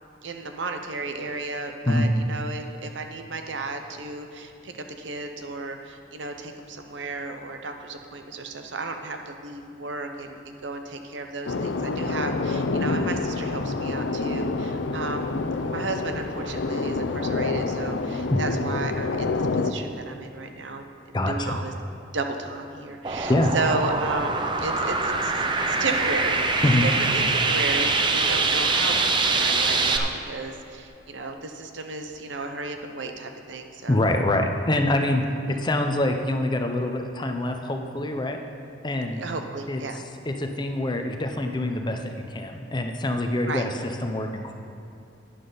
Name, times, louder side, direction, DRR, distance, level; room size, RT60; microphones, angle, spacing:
voice 1, 0.2-15.3 15.6-21.7 22.1-34.0 35.5-35.6 39.2-40.0 43.5-43.6, right 3 dB, 75° right, 5 dB, 0.8 m, -33 dB
sound 1, 11.5-19.7, left 3 dB, 75° left, 0.5 m, -27 dB
voice 2, 21.1-21.6 23.3-23.6 26.6-26.9 33.9-38.4 38.8-39.3 39.7-44.5, left 1 dB, 25° left, 4 dB, 0.7 m, -25 dB
sound 2, 23.0-30.0, right 3 dB, 25° right, 0.6 m, -24 dB
12.0 x 9.6 x 4.0 m, 2.6 s
head